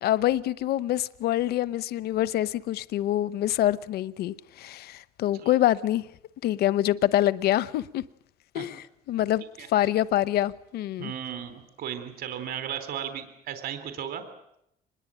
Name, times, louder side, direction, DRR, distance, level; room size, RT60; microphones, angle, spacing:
voice 1, 0.0-6.1 6.4-8.0 8.5-9.4 9.7-11.1, left 13 dB, 70° left, 0.9 m, -26 dB
voice 2, 11.0-14.2, right 9 dB, 65° right, 3.6 m, -35 dB
25.0 x 21.0 x 8.9 m
cardioid pair, 110°, 17 cm